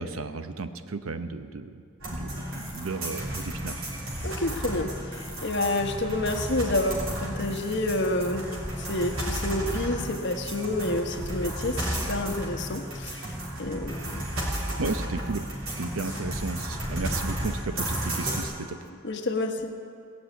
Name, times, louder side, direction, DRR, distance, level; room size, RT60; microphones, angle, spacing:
voice 1, 0.0-1.8 2.1-3.8 14.8-15.5 15.8-18.8, right 3 dB, 90° right, 10 dB, 0.8 m, -34 dB
sound 1, 2.0-18.4, right 1 dB, 70° right, 3.5 m, -33 dB
voice 2, 4.2-8.4 8.8-13.3 13.6-14.2 19.0-19.7, left 2 dB, 60° left, 5 dB, 1.1 m, -29 dB
17.5 x 6.2 x 9.1 m, 2.4 s
head